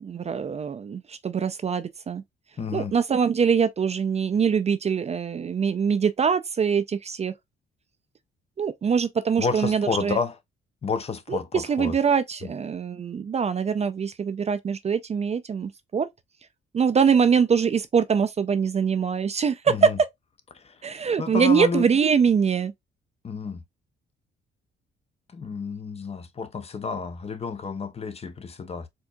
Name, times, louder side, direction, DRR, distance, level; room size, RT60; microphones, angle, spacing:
voice 1, 0.0-2.2 2.7-7.3 8.6-10.2 11.3-16.1 16.7-20.1 20.8-22.7, right 6 dB, 35° right, 0.4 m, -23 dB
voice 2, 2.6-2.9 9.4-10.4 10.8-12.0 19.7-20.0 20.5-20.8 21.2-21.9 23.2-23.6 25.3-28.9, left 5 dB, 30° left, 0.6 m, -30 dB
4.4 x 2.7 x 2.3 m
cardioid pair, 90°, 20 cm